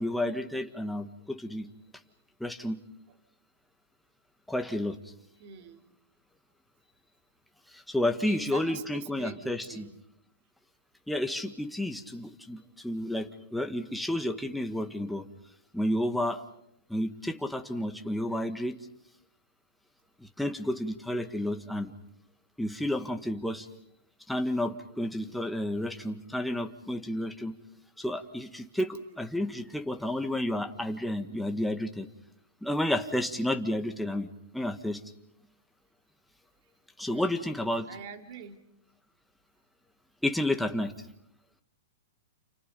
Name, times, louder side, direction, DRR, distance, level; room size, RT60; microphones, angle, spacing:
voice 1, 0.0-1.7 2.4-2.8 4.5-5.0 7.7-9.8 11.1-15.3 15.7-16.4 16.9-18.7 20.2-21.9 22.6-23.7 24.3-27.5 28.0-32.1 32.6-34.3 34.5-35.0 37.0-37.9 40.2-41.1, left 1 dB, ahead, 6 dB, 1.6 m, -31 dB
voice 2, 5.4-5.8 8.0-10.0 37.1-37.5 37.9-38.6, right 8 dB, 50° right, 7 dB, 2.7 m, -44 dB
29.5 x 28.5 x 5.4 m, 0.77 s
hypercardioid pair, 145°, 0 cm